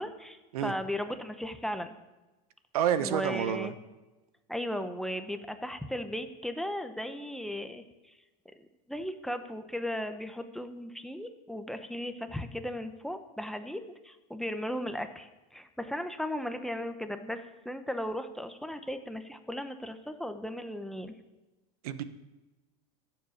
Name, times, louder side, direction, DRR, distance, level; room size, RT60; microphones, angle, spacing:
voice 1, 0.0-1.9 3.0-3.7 4.5-8.2 8.6-21.1, equal, ahead, 8 dB, 0.9 m, -36 dB
voice 2, 2.7-3.7 21.8-22.0, right 10 dB, 85° right, 12 dB, 1.1 m, -29 dB
14.5 x 7.6 x 7.3 m, 1.1 s
supercardioid pair, 140°, 18 cm